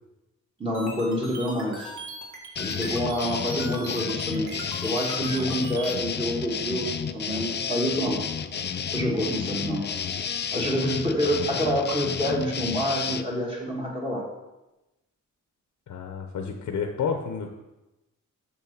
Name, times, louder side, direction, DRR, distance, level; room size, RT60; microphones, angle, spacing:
voice 1, 0.6-1.9 2.6-8.2 8.9-9.9 10.5-14.2, equal, 15° right, -2 dB, 1.5 m, -27 dB
sound 1, 0.7-6.0, right 2 dB, 60° right, 2.0 m, -39 dB
sound 2, 2.6-13.2, left 7 dB, 35° left, 0.4 m, -31 dB
voice 2, 3.1-3.4 15.9-17.5, left 6 dB, 65° left, 4 dB, 0.9 m, -31 dB
6.8 x 5.7 x 6.5 m, 0.99 s
wide cardioid pair, 175°, 32 cm